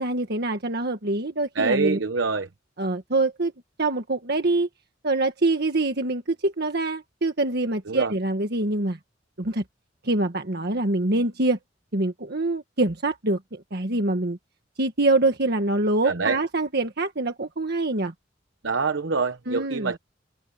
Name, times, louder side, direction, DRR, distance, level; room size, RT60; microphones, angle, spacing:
voice 1, 0.0-2.0 2.8-3.5 3.8-4.7 5.0-9.0 9.4-9.6 10.0-11.6 11.9-14.4 14.8-18.1 19.5-20.0, right 2 dB, 55° right, 1.6 m, -25 dB
voice 2, 1.5-2.5 7.9-8.1 16.0-16.4 18.6-20.0, right 4 dB, 75° right, 1.0 m, -25 dB
head